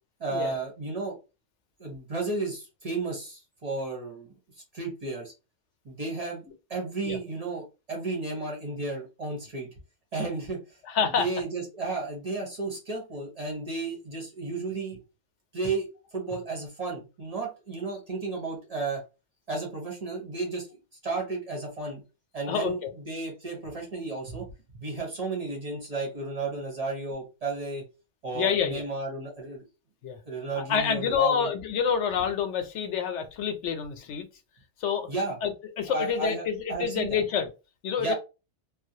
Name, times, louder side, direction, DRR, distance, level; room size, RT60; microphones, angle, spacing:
voice 1, 0.2-1.2 1.8-4.3 4.7-5.3 5.8-6.4 6.7-9.7 10.1-10.6 11.2-15.0 15.5-15.9 16.1-19.0 19.5-20.7 21.0-22.0 22.3-24.5 24.7-27.8 28.2-29.6 30.3-31.5 35.1-35.4 35.9-37.2 38.0-38.1, right 3 dB, 40° right, 0 dB, 0.7 m, -33 dB
voice 2, 10.9-11.3 22.5-22.7 28.3-28.8 30.0-30.2 30.6-34.3 34.8-35.1 35.4-37.5 37.8-38.1, left 7 dB, 80° left, 7 dB, 0.9 m, -27 dB
2.4 x 2.0 x 2.6 m, 0.28 s
omnidirectional pair, 1.2 m